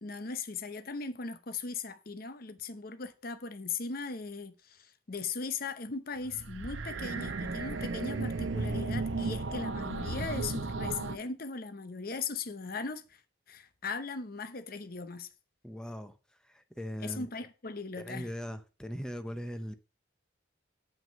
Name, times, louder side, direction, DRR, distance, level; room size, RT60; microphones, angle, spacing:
voice 1, 0.0-13.2 13.5-15.3 17.0-18.3, left 4 dB, 50° left, 0.8 m, -38 dB
sound 1, 6.2-11.2, right 3 dB, 80° right, 0.8 m, -34 dB
voice 2, 15.6-16.2 16.4-17.3 18.0-19.7, equal, 5° left, 0.7 m, -39 dB
7.6 x 6.1 x 5.3 m
head